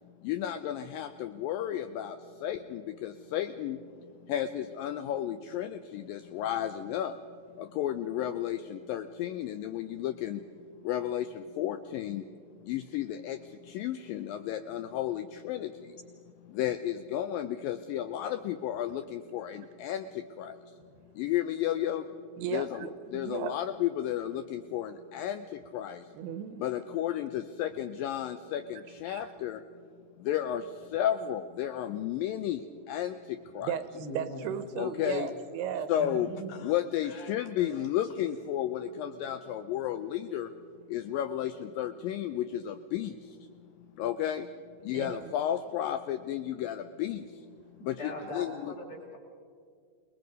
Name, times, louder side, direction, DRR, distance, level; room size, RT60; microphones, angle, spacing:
voice 1, 0.2-3.9 4.2-7.2 7.6-10.4 10.8-12.3 12.6-16.0 16.5-20.7 21.2-22.0 22.5-26.1 26.6-29.6 30.2-33.8 34.8-35.3 35.9-40.5 40.9-43.5 44.0-44.5 44.8-47.4 47.8-48.7, left 11 dB, 80° left, 9 dB, 2.1 m, -33 dB
voice 2, 22.4-23.5 26.1-26.6 29.1-29.3 33.6-35.9 44.9-45.3, right 9 dB, 85° right, 12 dB, 3.0 m, -36 dB
voice 3, 33.9-35.2 36.0-36.5 48.0-49.2, equal, 40° left, -2 dB, 4.5 m, -41 dB
27.5 x 20.0 x 5.3 m, 2.2 s
omnidirectional pair, 4.6 m